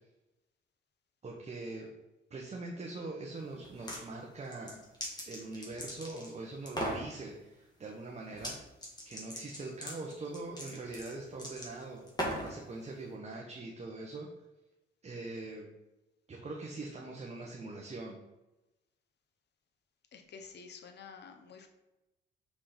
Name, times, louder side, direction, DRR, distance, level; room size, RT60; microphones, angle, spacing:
voice 1, 1.2-1.9 2.3-4.8 5.2-8.5 9.0-12.1 12.4-14.3 15.0-15.7 16.3-18.2, right 2 dB, 35° right, -1 dB, 1.3 m, -42 dB
sound 1, 3.6-4.0 4.5-6.3 6.7-7.0 8.3-8.6 8.8-12.6, equal, 20° left, 2.6 m, -39 dB
voice 2, 20.1-21.7, left 5 dB, 60° left, 5 dB, 1.2 m, -50 dB
6.0 x 5.3 x 5.1 m, 0.98 s
cardioid pair, 90°, 20 cm